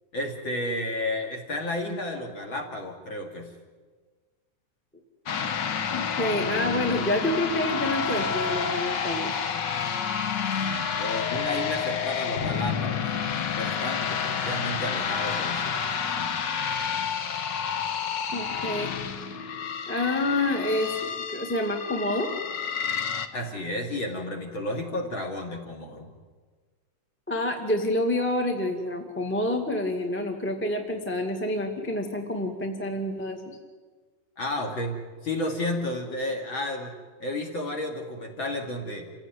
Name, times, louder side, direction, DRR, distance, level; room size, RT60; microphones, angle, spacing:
voice 1, 0.1-3.5 11.0-13.1 13.6-16.3 23.3-26.1 34.4-35.0 35.2-36.9 37.2-39.1, left 1 dB, 40° left, 1 dB, 3.3 m, -32 dB
sound 1, 5.3-23.3, left 7 dB, 75° left, 1.0 m, -29 dB
voice 2, 5.9-9.4 18.3-18.9 19.9-22.3 27.3-33.6, left 1 dB, 5° left, 3 dB, 1.3 m, -28 dB
28.0 x 16.5 x 9.4 m, 1.4 s
omnidirectional pair, 3.7 m